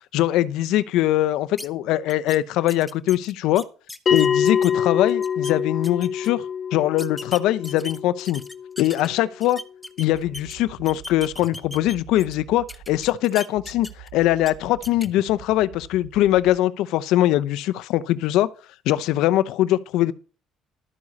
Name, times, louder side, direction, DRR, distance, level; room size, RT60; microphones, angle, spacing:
voice 1, 0.1-3.6 4.1-6.4 6.7-8.4 8.8-9.6 10.0-18.5 18.9-20.1, left 14 dB, 80° left, 0.7 m, -22 dB
sound 1, 1.6-1.7 2.1-2.4 2.7-4.7 5.1-5.5 5.8-6.3 7.0-9.1 9.4-10.6 10.9-12.3 12.7-14.1 14.4-14.5 14.8-15.1, left 1 dB, 10° left, 0.9 m, -38 dB
Bell, 4.1-9.1, left 7 dB, 45° left, 0.8 m, -25 dB
sound 2, 10.1-13.1 13.6-16.6, right 10 dB, 60° right, 3.5 m, -45 dB
12.5 x 9.6 x 4.2 m
cardioid pair, 105°, 0 cm